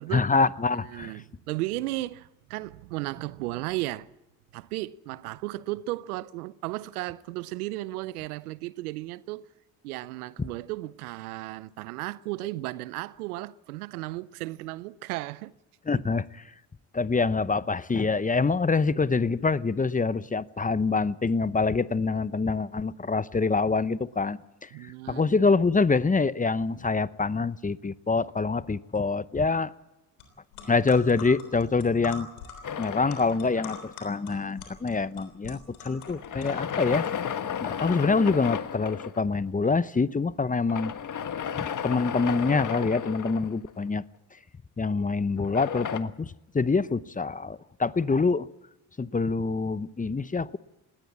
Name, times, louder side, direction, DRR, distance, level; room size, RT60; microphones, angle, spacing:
voice 1, 0.1-1.1 15.9-16.4 16.9-29.7 30.7-32.3 32.8-37.1 37.6-40.9 41.6-44.0 44.8-48.5 49.0-50.6, left 4 dB, 20° left, 0.8 m, -25 dB
voice 2, 0.8-4.1 4.5-9.5 9.8-15.5 15.9-16.0 24.7-25.3, right 18 dB, 90° right, 0.7 m, -35 dB
sound 1, 30.2-30.3 30.5-37.1, left 6 dB, 90° left, 3.6 m, -44 dB
sound 2, 32.6-34.2 36.0-39.2 40.7-43.9 45.4-46.0, left 8 dB, 45° left, 1.5 m, -33 dB
19.5 x 17.0 x 8.5 m
hypercardioid pair, 55°, 43 cm